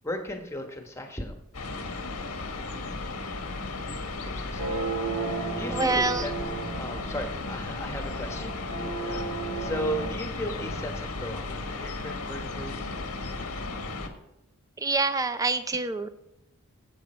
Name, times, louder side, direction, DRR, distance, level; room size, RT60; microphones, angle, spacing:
voice 1, 0.0-1.3 4.3-4.8 5.6-6.4 6.8-9.2 9.6-12.9, equal, 10° left, 4 dB, 1.3 m, -36 dB
sound 1, 1.5-14.1, left 3 dB, 85° left, 1.5 m, -35 dB
sound 2, 4.6-10.1, right 4 dB, 75° right, 2.3 m, -34 dB
voice 2, 5.7-6.2 14.8-16.1, right 3 dB, 15° right, 11 dB, 0.5 m, -26 dB
14.0 x 8.0 x 4.4 m, 0.89 s
head